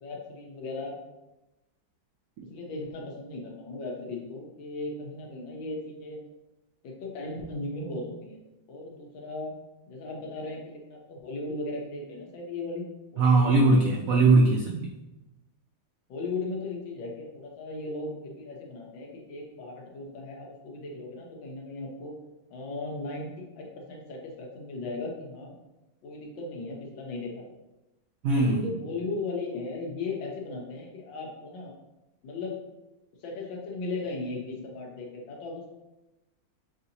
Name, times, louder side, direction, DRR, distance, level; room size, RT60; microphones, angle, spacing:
voice 1, 0.0-0.9 2.5-6.2 6.8-8.4 8.7-9.6 9.9-13.9 16.1-22.1 22.5-25.5 26.0-27.4 28.3-31.7 32.2-32.6 33.2-35.7, left 3 dB, 85° left, -1 dB, 1.6 m, -37 dB
voice 2, 13.2-14.9 28.2-28.6, right 3 dB, 90° right, 0 dB, 0.7 m, -20 dB
6.0 x 2.6 x 2.8 m, 1.0 s
omnidirectional pair, 2.0 m